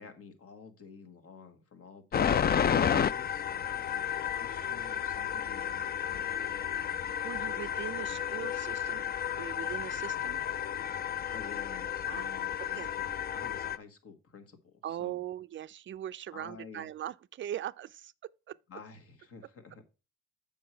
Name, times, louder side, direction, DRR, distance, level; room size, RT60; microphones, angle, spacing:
voice 1, 0.0-4.0 4.4-7.1 8.1-8.2 11.3-15.2 16.3-16.9 18.7-19.8, left 5 dB, 50° left, 1.6 m, -51 dB
sound 1, 2.1-13.8, left 8 dB, 35° left, 0.4 m, -32 dB
voice 2, 7.2-10.4 12.1-12.3 12.8-12.9 14.8-18.6, right 11 dB, 40° right, 0.4 m, -40 dB
7.6 x 5.5 x 4.4 m
cardioid pair, 90°, 30 cm